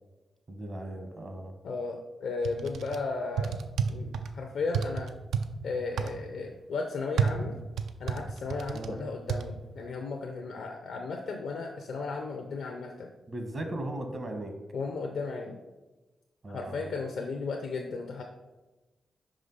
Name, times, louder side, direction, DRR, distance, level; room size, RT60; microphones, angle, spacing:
voice 1, 0.5-1.5 8.7-9.0 13.3-14.5 16.4-17.0, right 1 dB, 50° right, 5 dB, 1.2 m, -37 dB
voice 2, 1.6-3.6 3.9-5.1 5.6-7.6 8.0-13.1 14.7-15.6 16.5-18.2, left 4 dB, 80° left, 2 dB, 0.5 m, -35 dB
sound 1, 2.4-3.0 3.4-4.3 4.7-5.5 6.0-6.1 7.2-8.9 9.3-9.4, right 7 dB, 85° right, 0.3 m, -29 dB
5.2 x 4.9 x 4.0 m, 1.1 s
supercardioid pair, 45°, 0 cm